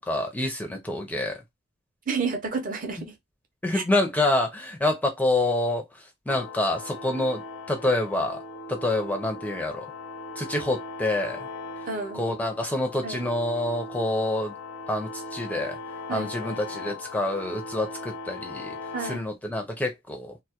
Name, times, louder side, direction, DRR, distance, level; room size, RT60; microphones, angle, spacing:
voice 1, 0.0-1.4 3.6-5.9 6.3-7.4 7.7-8.4 8.7-9.9 10.4-11.5 12.1-14.5 14.9-15.8 16.1-18.7 19.0-20.3, left 1 dB, 10° left, 0.4 m, -27 dB
voice 2, 2.1-3.1 3.7-3.8 11.9-12.2 13.0-13.2 16.1-16.5 18.9-19.3, right 4 dB, 40° right, 0.5 m, -31 dB
sound 1, 6.3-19.2, left 3 dB, 65° left, 0.5 m, -39 dB
2.2 x 2.1 x 2.8 m
head